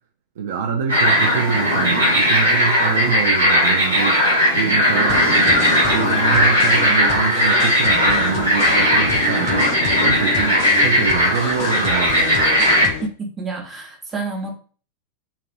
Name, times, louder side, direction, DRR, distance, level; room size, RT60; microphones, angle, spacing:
voice 1, 0.4-4.2 4.5-5.3 5.8-12.5, right 6 dB, 60° right, 1 dB, 0.3 m, -25 dB
sound 1, 0.9-12.9, equal, 85° right, 0.8 m, -17 dB
sound 2, 5.1-13.1, left 7 dB, 40° left, 0.3 m, -30 dB
voice 2, 13.4-14.6, right 3 dB, 15° right, 1 dB, 0.7 m, -29 dB
2.3 x 2.2 x 2.4 m, 0.40 s
figure-of-eight pair, 90°, 0 cm